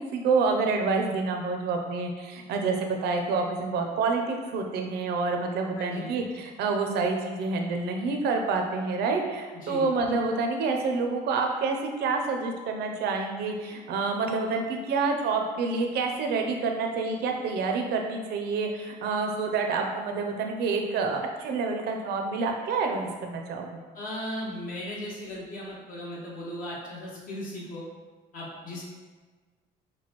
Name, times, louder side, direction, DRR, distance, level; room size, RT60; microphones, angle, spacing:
voice 1, 0.1-23.8, right 4 dB, 75° right, 3 dB, 0.6 m, -28 dB
voice 2, 5.7-6.1 9.6-9.9 23.9-27.8 28.3-28.8, left 1 dB, 55° left, -5 dB, 1.3 m, -37 dB
6.0 x 2.3 x 3.0 m, 1.4 s
cardioid pair, 110°, 17 cm